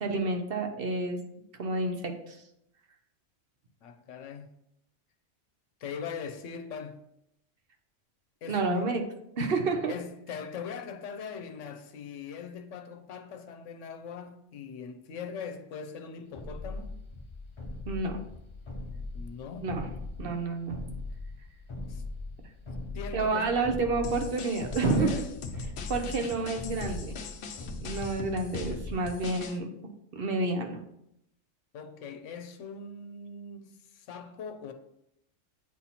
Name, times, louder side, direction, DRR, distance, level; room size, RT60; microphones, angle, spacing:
voice 1, 0.0-1.2 1.6-2.4 8.5-9.0 9.4-9.9 17.9-18.2 19.6-19.9 20.2-20.8 23.1-25.3 25.9-27.2 27.8-29.7 30.2-30.8, right 3 dB, 55° right, 0.8 m, -29 dB
voice 2, 3.8-4.5 5.8-7.0 8.4-8.9 9.9-16.9 19.1-19.7 21.9-22.0 22.9-23.5 24.8-25.3 31.7-34.7, left 6 dB, 85° left, 1.0 m, -41 dB
sound 1, 16.3-29.4, left 2 dB, 40° left, 0.4 m, -40 dB
sound 2, 24.0-29.6, left 4 dB, 65° left, 0.8 m, -41 dB
8.3 x 2.8 x 4.1 m
omnidirectional pair, 1.3 m